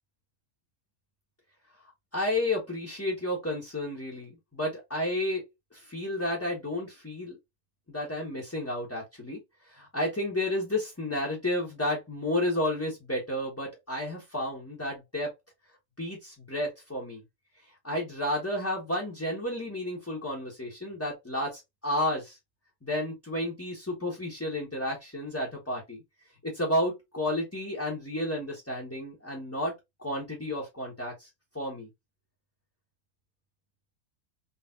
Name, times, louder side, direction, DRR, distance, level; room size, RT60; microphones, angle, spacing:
voice 1, 2.1-5.4 5.7-7.4 7.9-15.3 16.0-17.2 17.6-22.4 22.8-26.0 26.4-29.7 30.0-31.3 31.5-31.9, left 1 dB, 10° left, 1.3 m, -31 dB
4.2 x 3.3 x 2.6 m
omnidirectional pair, 1.6 m